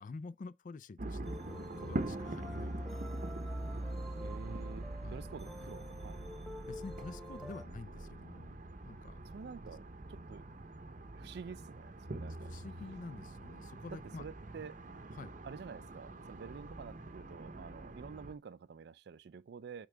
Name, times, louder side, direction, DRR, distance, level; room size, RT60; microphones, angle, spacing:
voice 1, 0.0-3.1 5.0-5.3 6.7-9.2 12.5-14.3 15.1-15.3, left 3 dB, 45° left, 0.4 m, -49 dB
sound 1, 1.0-18.3, right 1 dB, 45° right, 0.7 m, -43 dB
sound 2, 1.2-7.7, left 1 dB, ahead, 0.6 m, -50 dB
voice 2, 4.2-6.3 9.3-9.8 10.1-10.5 11.2-12.5 13.9-14.9 15.4-19.9, right 5 dB, 60° right, 0.4 m, -49 dB
8.4 x 3.8 x 3.3 m
head